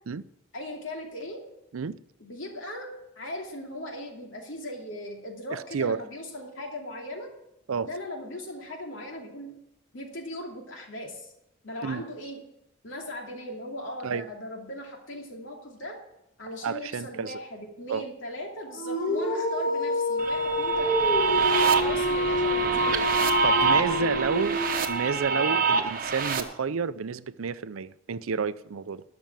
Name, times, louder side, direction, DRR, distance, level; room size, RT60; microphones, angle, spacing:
voice 1, 0.5-1.4 2.2-2.9 3.2-7.3 7.8-9.5 9.9-11.3 11.6-12.4 12.8-16.0 16.4-21.2 21.6-23.1 23.7-24.3 25.3-25.6, left 1 dB, 70° left, 2.7 m, -38 dB
voice 2, 5.5-6.0 7.7-7.9 11.8-12.0 14.0-14.3 16.6-17.4 17.9-18.0 23.4-24.6 24.9-29.0, right 5 dB, 90° right, 0.5 m, -30 dB
Dog, 18.7-25.1, left 1 dB, 40° left, 1.4 m, -27 dB
sound 1, 20.2-26.4, right 5 dB, 45° right, 1.0 m, -26 dB
12.5 x 6.1 x 9.0 m
head